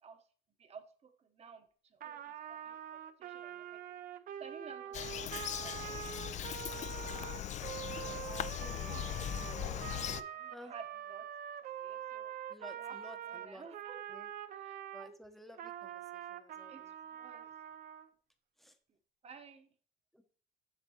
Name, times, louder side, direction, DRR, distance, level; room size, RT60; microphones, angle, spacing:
voice 1, 0.6-3.8 4.4-6.5 8.9-9.1 10.1-11.3 11.8-12.3 12.7-13.0 13.2-14.0 14.5-15.3 16.7-17.5 18.9-19.0 19.2-19.7, right 5 dB, 40° right, 7 dB, 0.9 m, -54 dB
Trumpet, 2.0-15.1 15.5-18.1, right 10 dB, 55° right, 0.5 m, -45 dB
Bird vocalization bird call bird song, 4.9-10.2, left 10 dB, 45° left, 0.4 m, -39 dB
voice 2, 7.4-7.7 8.0-9.8 10.5-10.7 12.5-13.6 14.1-14.3 14.9-16.9 18.6-18.7 20.1-20.2, equal, ahead, 7 dB, 0.8 m, -54 dB
8.1 x 5.9 x 2.8 m, 0.43 s
cardioid pair, 110°, 17 cm